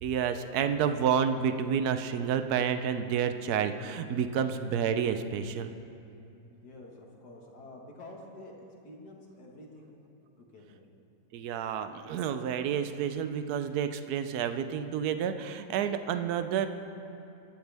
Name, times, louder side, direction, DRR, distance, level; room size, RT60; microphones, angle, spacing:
voice 1, 0.0-5.7 11.3-16.7, right 8 dB, 70° right, 9 dB, 1.1 m, -29 dB
voice 2, 6.6-10.0 10.4-10.9, left 1 dB, 70° left, -1 dB, 2.2 m, -49 dB
23.0 x 11.5 x 3.5 m, 2.9 s
omnidirectional pair, 1.8 m